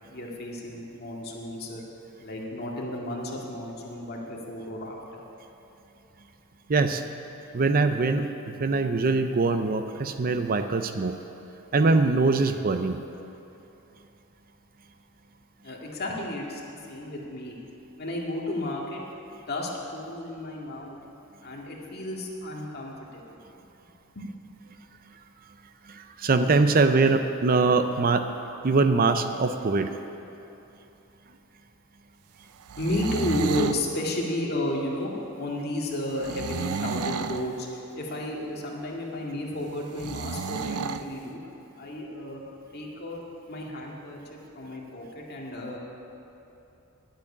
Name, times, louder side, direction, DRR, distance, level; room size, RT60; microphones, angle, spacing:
voice 1, 0.1-1.8 2.2-5.2 15.6-16.6 16.9-17.6 18.0-19.0 19.5-21.0 21.4-23.4 24.2-24.3 32.8-41.4 41.8-42.4 42.7-45.8, left 1 dB, 45° left, -2 dB, 2.1 m, -32 dB
voice 2, 6.7-7.0 7.5-11.2 11.7-13.0 25.9-28.3 28.6-29.9, right 3 dB, 40° right, 8 dB, 0.6 m, -23 dB
sound 1, 32.6-33.8 36.2-37.5 40.0-41.1, right 5 dB, 90° right, 0.5 m, -31 dB
11.5 x 8.5 x 9.9 m, 2.9 s
head